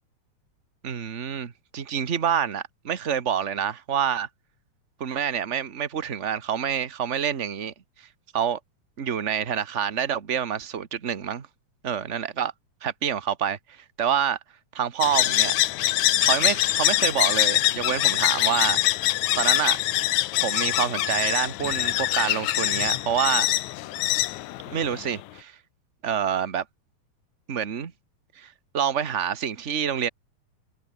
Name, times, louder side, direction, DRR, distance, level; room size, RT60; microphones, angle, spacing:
voice 1, 0.8-4.3 5.0-8.1 8.3-8.6 9.0-11.5 11.8-12.5 12.8-14.4 14.7-15.5 16.2-18.8 19.4-19.8 20.4-23.5 24.7-25.6 26.0-26.6 27.5-27.9 28.4-30.1, right 8 dB, 40° right, 1.0 m, -27 dB
sound 1, 15.0-25.2, left 16 dB, 75° left, 2.1 m, -24 dB
omnidirectional pair, 3.5 m